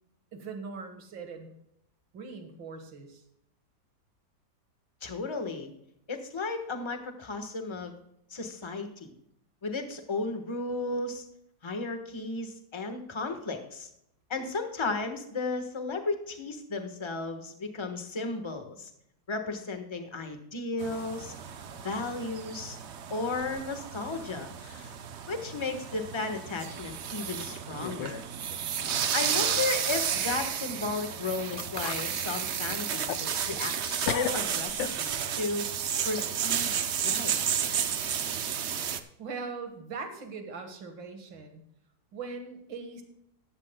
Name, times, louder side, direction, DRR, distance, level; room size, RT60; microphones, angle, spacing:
voice 1, 0.3-1.6 2.1-3.2 39.2-41.6 42.1-43.0, right 4 dB, 80° right, 6 dB, 2.3 m, -40 dB
voice 2, 5.0-5.7 6.1-7.9 8.3-9.1 9.6-11.3 11.6-13.9 14.3-18.9 19.3-21.3 21.7-22.8 23.1-24.5 25.3-28.2 29.1-35.6 36.0-37.8, left 3 dB, 20° left, 6 dB, 1.1 m, -34 dB
sound 1, 20.8-39.0, right 8 dB, 60° right, 0.7 m, -32 dB
sound 2, 23.4-24.3 24.6-25.1 25.5-25.6 26.5-26.6 27.3-27.4 27.8-28.2 28.5-28.6 31.1-31.2 31.6-32.1 32.5-33.8 34.0-35.3, left 12 dB, 75° left, 1.2 m, -37 dB
15.0 x 11.5 x 2.2 m, 0.76 s
omnidirectional pair, 2.0 m